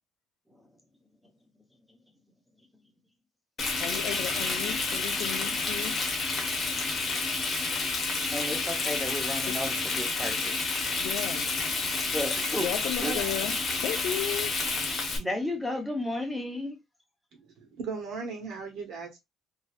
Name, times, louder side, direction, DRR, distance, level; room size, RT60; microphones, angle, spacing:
Frying (food), 3.6-15.2, left 3 dB, 30° left, 1.0 m, -30 dB
voice 1, 3.8-6.0 9.5-9.6 11.0-11.5 12.6-14.5, left 11 dB, 75° left, 0.6 m, -34 dB
voice 2, 8.3-10.6 12.1-12.7 13.0-13.1 15.2-16.8, left 1 dB, ahead, 0.7 m, -33 dB
voice 3, 13.0-13.5 17.3-19.2, right 5 dB, 65° right, 1.0 m, -37 dB
3.2 x 2.7 x 2.3 m
cardioid pair, 170°, 0 cm